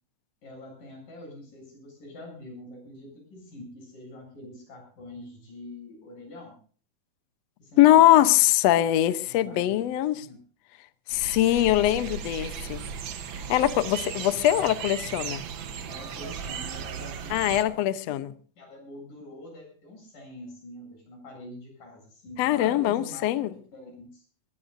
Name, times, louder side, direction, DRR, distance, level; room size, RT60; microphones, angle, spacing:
voice 1, 0.4-6.6 7.6-8.4 9.2-10.4 15.8-17.9 18.6-23.2 23.7-24.3, left 1 dB, 85° left, 9.7 m, -45 dB
voice 2, 7.8-10.1 11.1-12.8 13.5-15.4 17.3-18.3 22.4-23.5, left 13 dB, 70° left, 1.7 m, -22 dB
sound 1, 11.1-17.6, right 7 dB, 65° right, 1.2 m, -36 dB
21.0 x 20.5 x 2.6 m
omnidirectional pair, 3.7 m